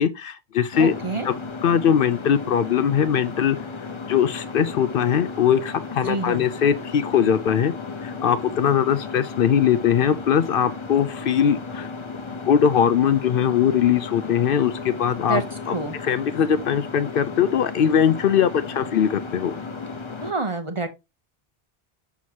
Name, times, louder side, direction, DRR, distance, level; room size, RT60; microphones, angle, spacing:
voice 1, 0.0-0.9 1.2-1.3 1.6-3.6 4.1-7.7 8.0-11.9 12.4-15.4 15.7-15.8 16.0-19.5, left 8 dB, 65° left, 0.7 m, -21 dB
sound 1, 0.7-20.3, left 4 dB, 30° left, 0.8 m, -35 dB
voice 2, 0.8-1.3 6.0-6.4 15.3-16.0 20.2-20.9, right 3 dB, 35° right, 0.8 m, -27 dB
6.3 x 5.9 x 2.8 m
omnidirectional pair, 1.1 m